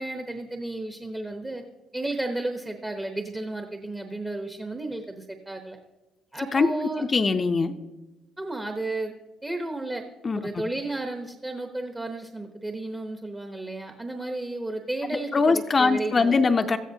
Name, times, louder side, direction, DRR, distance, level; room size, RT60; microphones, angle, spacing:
voice 1, 0.0-1.6 1.9-5.8 6.3-7.0 8.4-9.1 9.4-10.0 10.3-16.5, right 2 dB, 15° right, 5 dB, 0.9 m, -33 dB
voice 2, 7.0-7.8 10.2-10.4 15.3-16.8, left 4 dB, 30° left, 7 dB, 0.6 m, -22 dB
17.5 x 13.0 x 2.8 m, 1.1 s
cardioid pair, 100°, 0 cm